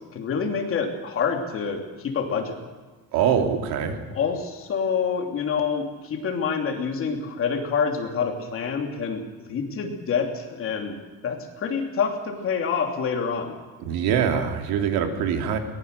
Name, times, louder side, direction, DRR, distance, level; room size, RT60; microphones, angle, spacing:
voice 1, 0.1-2.6 4.1-11.0 11.2-13.5, left 6 dB, 35° left, 3 dB, 2.9 m, -27 dB
voice 2, 3.1-4.0 13.8-15.6, right 7 dB, 80° right, 4 dB, 3.0 m, -23 dB
22.0 x 19.5 x 6.8 m, 1.3 s
cardioid pair, 180°, 37 cm